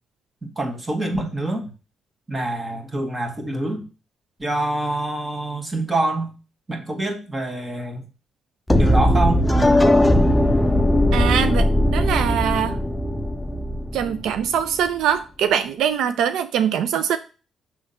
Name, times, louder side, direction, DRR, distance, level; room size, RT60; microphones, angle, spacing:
voice 1, 0.4-1.7 2.3-3.8 4.4-6.3 6.7-8.0 8.8-9.5, right 1 dB, 20° right, 1.7 m, -25 dB
sound 1, 8.7-14.7, left 1 dB, 5° left, 0.7 m, -18 dB
voice 2, 11.1-12.8 13.9-17.2, right 8 dB, 85° right, 0.5 m, -22 dB
6.2 x 3.6 x 5.6 m
cardioid pair, 90°, 0 cm